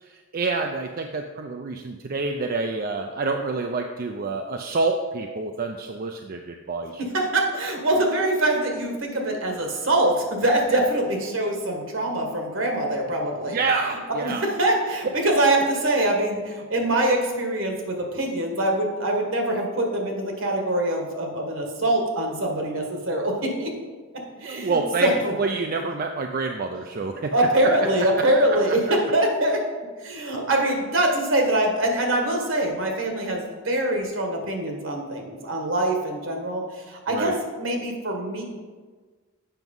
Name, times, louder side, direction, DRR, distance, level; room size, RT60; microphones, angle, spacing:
voice 1, 0.0-7.0 13.5-14.4 24.4-25.1 25.4-27.3 37.1-37.4, right 3 dB, 45° right, 4 dB, 0.4 m, -27 dB
voice 2, 7.0-13.6 14.2-23.7 24.4-25.3 27.3-29.6 30.0-38.4, right 1 dB, 70° right, 2 dB, 1.6 m, -24 dB
7.9 x 6.0 x 5.4 m, 1.4 s
head